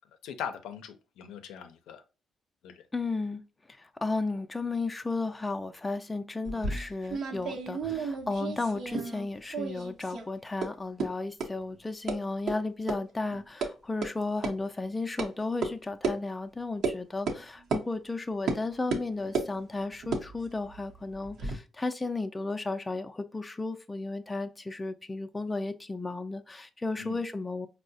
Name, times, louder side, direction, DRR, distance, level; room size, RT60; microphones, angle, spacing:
voice 1, 0.2-2.0 2.6-2.8 8.5-8.6 27.0-27.2, left 8 dB, 90° left, 0.4 m, -40 dB
voice 2, 2.9-3.4 3.8-27.7, left 3 dB, 15° left, 0.4 m, -34 dB
sound 1, 6.4-9.3 9.5-10.3 10.6-10.7 11.0-11.1 11.4-11.5 12.1-12.2 12.5-12.6 12.9-13.0 13.3-13.7 14.0-14.1 14.4-14.5 15.2-15.3 15.6-15.7 16.0-16.2 16.8-17.0 17.3-17.4 17.7-17.8 18.5-18.6 18.9-19.5 20.0-21.6, right 4 dB, 70° right, 0.7 m, -32 dB
4.5 x 2.0 x 2.6 m
cardioid pair, 90°, 0 cm